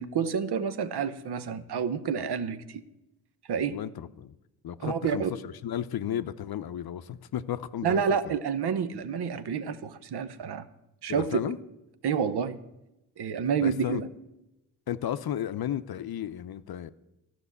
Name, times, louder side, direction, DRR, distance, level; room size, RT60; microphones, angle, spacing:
voice 1, 0.0-2.8 3.5-3.8 4.8-5.3 7.8-10.7 11.0-11.4 12.0-12.6 13.2-14.1, right 7 dB, 65° right, 14 dB, 0.9 m, -29 dB
voice 2, 3.7-4.3 4.6-8.4 11.1-11.6 13.6-14.0 14.9-16.9, left 10 dB, 60° left, 12 dB, 0.6 m, -34 dB
12.0 x 6.2 x 8.2 m, 0.94 s
cardioid pair, 55°, 43 cm